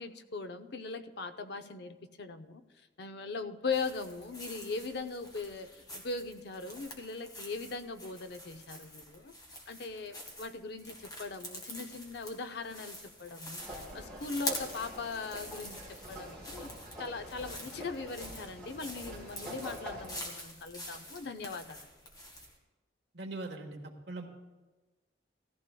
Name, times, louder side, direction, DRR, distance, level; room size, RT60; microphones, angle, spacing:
voice 1, 0.0-2.6 3.0-9.3 9.7-15.8 16.1-16.7 17.0-21.8, left 4 dB, 55° left, 8 dB, 0.6 m, -40 dB
sound 1, 3.7-22.6, left 1 dB, 20° left, 1.6 m, -46 dB
sound 2, 13.6-20.2, equal, 5° left, 4.0 m, -46 dB
voice 2, 23.1-24.3, right 2 dB, 60° right, 3 dB, 1.3 m, -41 dB
17.5 x 14.0 x 2.3 m, 1.2 s
head